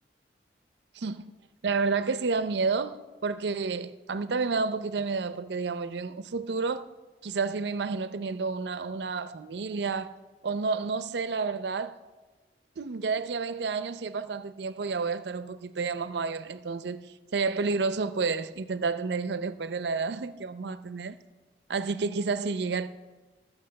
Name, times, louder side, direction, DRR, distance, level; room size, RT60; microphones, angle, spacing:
voice 1, 1.6-6.9 7.2-10.2 10.4-12.0 12.8-17.0 17.3-21.2 21.7-22.9, right 4 dB, 70° right, 0.5 m, -30 dB
14.0 x 6.0 x 7.7 m
head